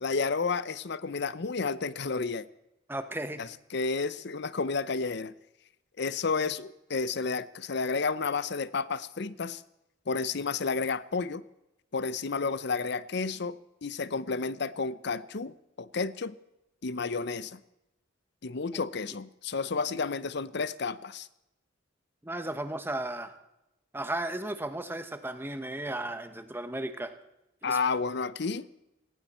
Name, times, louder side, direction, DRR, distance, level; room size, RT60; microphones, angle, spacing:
voice 1, 0.0-2.5 3.4-5.3 6.0-9.6 10.1-11.4 11.9-16.3 16.8-17.6 18.4-21.3 27.6-28.7, left 4 dB, 60° left, 17 dB, 0.7 m, -31 dB
voice 2, 2.9-3.4 12.4-12.5 18.7-18.8 22.2-23.3 23.9-27.1 27.6-27.8, right 1 dB, 10° right, 9 dB, 1.1 m, -35 dB
18.5 x 16.5 x 4.3 m, 0.90 s
head